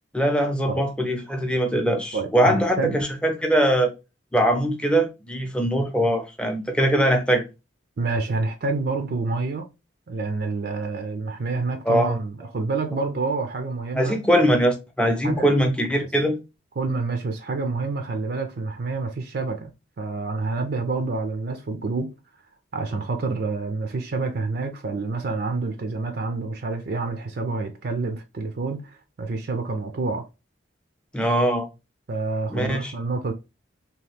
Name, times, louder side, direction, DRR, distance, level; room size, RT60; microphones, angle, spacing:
voice 1, 0.1-3.9 4.3-7.4 11.9-12.2 13.9-16.4 31.1-31.7 32.5-32.9, right 1 dB, 5° left, 0.5 m, -21 dB
voice 2, 2.1-3.0 8.0-9.7 10.1-14.2 15.2-15.6 16.8-19.7 20.0-22.1 22.7-30.3 32.1-33.3, right 3 dB, 55° right, 0.4 m, -28 dB
2.8 x 2.3 x 3.2 m
head